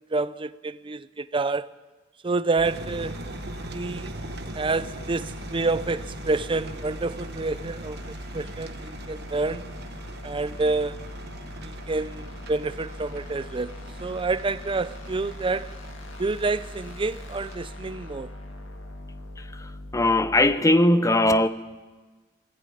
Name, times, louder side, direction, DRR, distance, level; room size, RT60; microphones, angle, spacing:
voice 1, 0.0-1.7 2.2-3.2 3.7-4.2 4.5-8.0 8.3-9.7 10.2-11.0 11.6-15.8 16.2-18.3, right 3 dB, 25° right, 0.5 m, -28 dB
sound 1, 2.6-20.6, left 1 dB, 70° left, 2.3 m, -41 dB
sound 2, 2.6-17.6, right 2 dB, 55° right, 1.1 m, -42 dB
voice 2, 19.9-21.5, left 1 dB, 15° left, 0.7 m, -19 dB
20.0 x 15.0 x 8.7 m
head